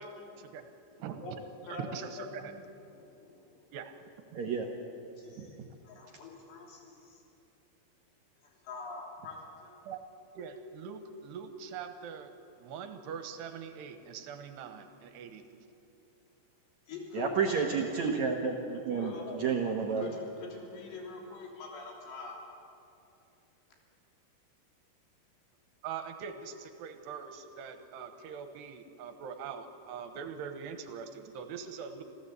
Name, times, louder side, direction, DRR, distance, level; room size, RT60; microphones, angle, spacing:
voice 1, 0.0-0.5 0.9-1.3 1.6-2.6 2.9-3.7 5.2-5.6 5.8-7.2 8.4-9.8 16.9-17.6 18.9-19.4 19.9-22.4, left 3 dB, 80° left, 0 dB, 5.4 m, -44 dB
voice 2, 1.0-1.4 1.7-2.5 3.7-4.0 4.3-4.4 9.9-10.0 10.3-12.3 12.6-15.4 25.8-32.0, right 7 dB, 80° right, 7 dB, 3.3 m, -42 dB
voice 3, 4.3-4.7 17.1-19.1 19.4-20.1, right 5 dB, 60° right, 1 dB, 2.0 m, -30 dB
26.5 x 15.5 x 8.2 m, 2.8 s
omnidirectional pair, 4.9 m